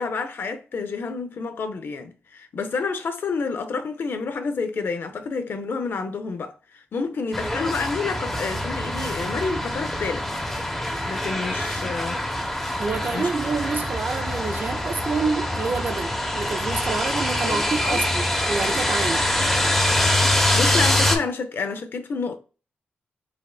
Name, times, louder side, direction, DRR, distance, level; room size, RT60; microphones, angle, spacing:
voice 1, 0.0-10.3 11.0-12.2 13.1-13.3 17.5-18.0 20.4-22.4, left 4 dB, 60° left, 0.6 m, -29 dB
sound 1, 7.3-21.2, left 1 dB, 5° left, 1.0 m, -24 dB
voice 2, 12.8-19.3, right 4 dB, 50° right, 0.6 m, -28 dB
5.1 x 2.5 x 2.3 m
cardioid pair, 70°, 4 cm